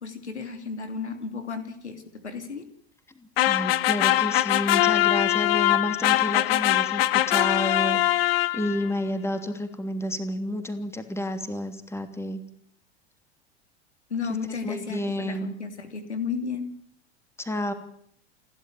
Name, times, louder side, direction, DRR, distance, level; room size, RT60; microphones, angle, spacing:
voice 1, 0.0-2.7 14.1-16.7, left 5 dB, 80° left, 8 dB, 3.1 m, -33 dB
voice 2, 3.2-8.0 8.5-12.4 14.6-15.5 17.4-17.7, left 1 dB, 10° left, 8 dB, 3.0 m, -30 dB
sound 1, 3.4-8.9, left 15 dB, 60° left, 1.2 m, -22 dB
29.5 x 12.0 x 9.4 m, 0.67 s
figure-of-eight pair, 85°, 33 cm